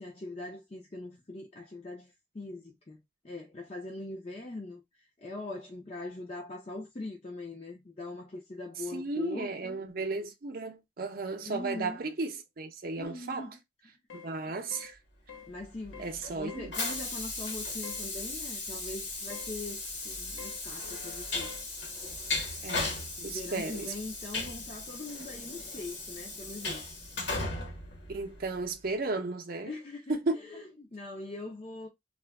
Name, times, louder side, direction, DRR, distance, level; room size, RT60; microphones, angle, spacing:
voice 1, 0.0-3.0 3.2-4.8 5.2-9.8 11.4-12.0 13.0-13.6 14.5-14.7 15.5-21.5 23.3-26.8 29.7-31.9, left 2 dB, 30° left, 0.5 m, -42 dB
voice 2, 8.9-13.5 14.1-15.0 16.0-16.7 22.6-22.9 23.2-23.9 28.1-29.7 30.1-30.4, right 3 dB, 45° right, 0.6 m, -34 dB
sound 1, 14.1-14.3 14.7-14.9 15.3-15.5 15.9-16.2 16.5-16.7 17.8-18.1 19.3-19.5 20.4-20.6 21.4-21.6, left 7 dB, 75° left, 0.7 m, -47 dB
Train, 15.6-28.7, left 3 dB, 60° left, 1.2 m, -37 dB
2.4 x 2.2 x 3.3 m
head